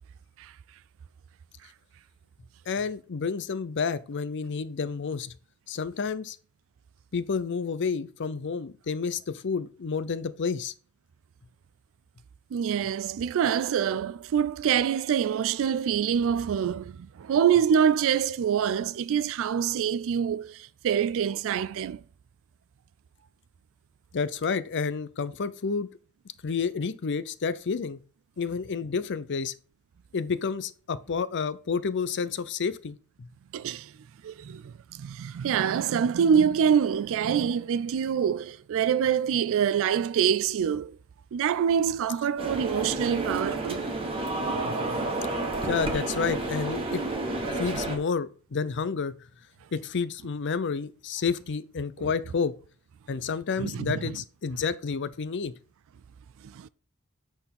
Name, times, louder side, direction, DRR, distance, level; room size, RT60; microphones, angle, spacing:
voice 1, 2.7-5.3 5.7-6.4 7.1-10.7 24.1-25.9 26.4-28.0 28.4-29.5 30.1-33.3 44.6-45.0 45.6-47.0 47.5-49.1 49.7-52.5 53.1-55.5, left 5 dB, 55° left, 0.6 m, -30 dB
voice 2, 12.5-22.0 33.5-33.9 34.2-41.0 41.3-43.9 52.0-52.1 53.6-54.2 56.4-56.7, right 8 dB, 65° right, 0.3 m, -26 dB
sound 1, 42.4-48.0, right 2 dB, 25° right, 1.4 m, -30 dB
7.9 x 4.3 x 5.3 m
head